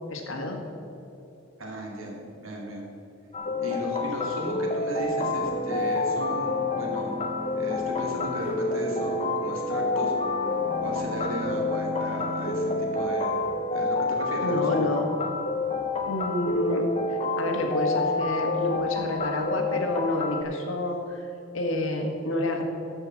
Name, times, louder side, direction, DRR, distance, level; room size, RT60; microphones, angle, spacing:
voice 1, 0.1-0.6 14.3-15.1 16.0-16.8 17.1-21.3 21.5-22.6, left 1 dB, 70° left, 3 dB, 1.6 m, -28 dB
voice 2, 1.6-2.9 3.6-7.2 7.6-10.1 10.8-13.4 13.7-14.9, right 1 dB, 80° right, -1 dB, 2.4 m, -35 dB
sound 1, 3.3-20.4, left 3 dB, 30° left, 0.7 m, -28 dB
sound 2, 5.2-13.1, left 1 dB, 10° right, 1.2 m, -38 dB
13.0 x 5.5 x 7.5 m, 2.9 s
head